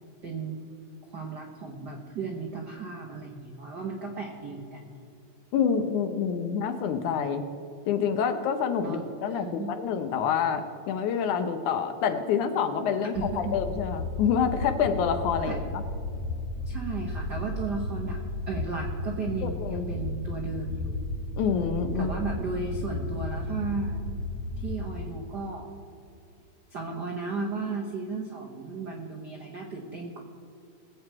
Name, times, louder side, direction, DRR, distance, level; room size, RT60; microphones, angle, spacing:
voice 1, 0.2-0.7 1.1-4.9 8.8-9.0 9.3-9.7 13.1-13.6 15.5-15.6 16.7-18.2 18.5-21.1 21.9-24.1 24.6-25.7 26.7-30.2, right 4 dB, 70° right, 0 dB, 1.0 m, -35 dB
voice 2, 5.5-7.5 7.9-15.8 19.4-19.9 21.4-22.1, left 7 dB, 75° left, 8 dB, 2.2 m, -27 dB
sound 1, 13.1-24.9, left 2 dB, 60° left, 1.6 m, -34 dB
20.0 x 8.1 x 4.7 m, 2.7 s
omnidirectional pair, 3.8 m